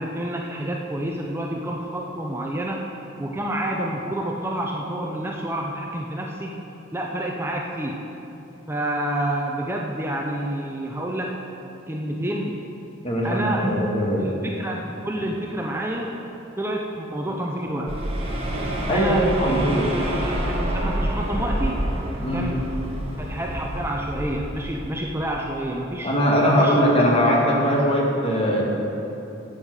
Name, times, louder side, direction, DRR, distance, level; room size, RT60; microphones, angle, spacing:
voice 1, 0.0-2.9 3.2-6.5 6.9-8.0 8.7-11.4 11.9-12.6 13.2-13.8 14.2-16.1 16.6-18.0 18.9-19.9 20.2-21.8 22.3-22.6 23.2-26.1 26.6-26.7, right 1 dB, 10° right, -1 dB, 0.6 m, -28 dB
voice 2, 13.0-14.3 18.9-19.9 22.2-22.5 26.0-28.6, equal, 30° left, -2 dB, 2.0 m, -20 dB
sound 1, 17.9-25.0, right 1 dB, 30° right, 1.5 m, -27 dB
9.8 x 8.9 x 6.5 m, 2.9 s
head